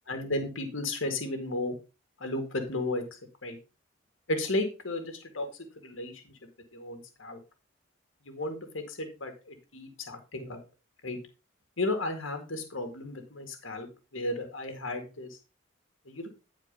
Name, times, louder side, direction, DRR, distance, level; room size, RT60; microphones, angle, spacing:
voice 1, 0.1-1.7 2.2-3.0 3.4-3.6 4.3-5.5 5.8-6.2 6.7-7.4 8.3-10.6 11.0-11.2 11.8-13.9 14.1-15.3 16.1-16.3, left 2 dB, 80° left, 5 dB, 1.9 m, -33 dB
9.9 x 4.6 x 5.2 m, 0.30 s
head